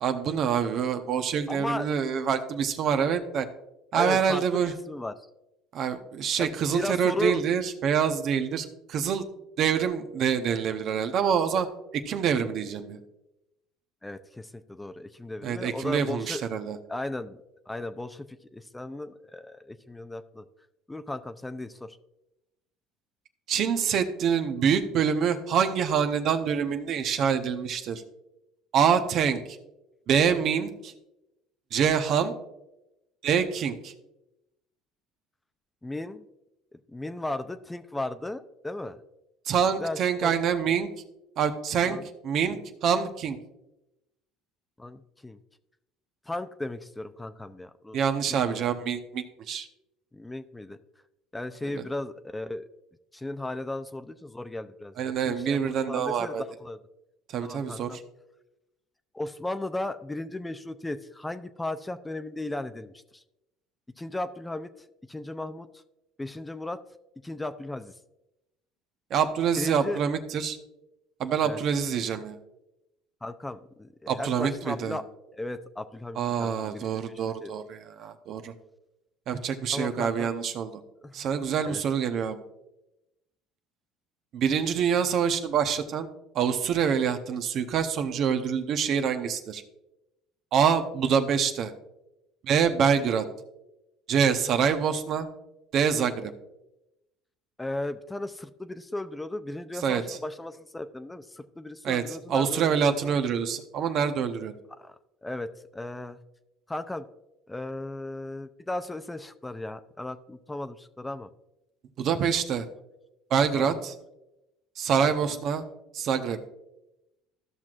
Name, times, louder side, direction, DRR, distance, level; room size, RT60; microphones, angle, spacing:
voice 1, 0.0-3.5 3.9-4.7 5.7-9.2 9.6-11.7 11.9-13.0 15.4-16.8 23.5-28.0 28.7-29.4 30.1-30.9 31.7-32.3 33.2-33.9 39.5-40.9 41.4-42.0 42.2-43.4 47.9-49.7 51.7-51.8 55.0-56.4 57.3-57.9 69.1-70.6 71.2-72.4 74.1-75.0 76.2-78.5 79.3-80.8 81.1-82.4 84.3-86.1 86.3-89.6 90.5-91.7 92.4-93.2 94.1-95.3 95.7-96.3 99.8-100.2 101.8-104.5 112.0-112.6 113.3-113.9 114.8-115.6 115.9-116.4, right 7 dB, 55° right, 8 dB, 0.9 m, -26 dB
voice 2, 1.5-1.9 3.9-5.1 6.4-7.4 14.0-16.4 16.9-17.4 17.7-20.5 20.9-22.0 35.8-36.3 36.9-39.0 39.8-40.4 41.8-42.1 42.5-42.6 44.8-45.4 46.3-48.0 48.3-48.6 50.1-50.8 51.3-52.6 53.1-56.8 57.4-58.0 59.1-63.2 64.0-64.7 65.1-65.8 66.2-66.8 67.2-67.9 69.6-70.0 71.4-71.6 73.2-75.0 75.3-77.0 77.4-77.5 79.7-80.3 81.0-81.3 81.6-81.8 97.6-103.1 104.7-105.0 105.2-106.2 106.7-107.0 107.5-111.3 113.5-113.8 115.0-115.4, left 2 dB, 10° left, 10 dB, 0.5 m, -36 dB
14.0 x 5.9 x 2.5 m, 0.90 s
supercardioid pair, 85°, 0 cm